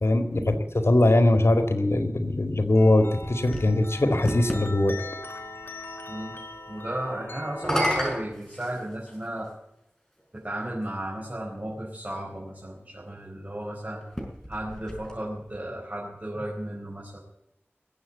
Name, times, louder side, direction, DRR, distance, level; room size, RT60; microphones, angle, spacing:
voice 1, 0.0-5.0, left 1 dB, 80° left, 6 dB, 2.0 m, -21 dB
sound 1, 2.7-8.0, left 2 dB, 55° left, 2.3 m, -41 dB
sound 2, 2.8-4.7 7.5-9.3 10.2-10.3 14.0-15.6, equal, 10° left, 5.5 m, -31 dB
voice 2, 6.1-6.4 6.7-9.5 10.3-14.0 14.5-17.2, right 1 dB, 40° right, -4 dB, 4.7 m, -34 dB
20.5 x 8.1 x 8.3 m, 0.82 s
wide cardioid pair, 45°, 4 cm